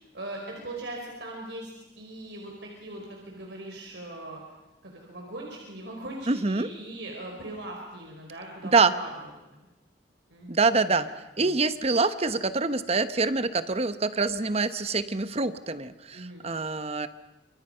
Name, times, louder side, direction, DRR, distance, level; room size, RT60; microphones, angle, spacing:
voice 1, 0.1-4.4 4.8-9.1 9.5-9.6 10.3-11.0 11.4-11.5 16.1-16.5, right 1 dB, 70° right, 0 dB, 4.8 m, -40 dB
voice 2, 6.3-6.7 8.7-8.9 10.5-11.1 11.4-17.1, right 3 dB, 35° right, 12 dB, 1.0 m, -25 dB
29.5 x 26.5 x 5.6 m, 1.0 s
head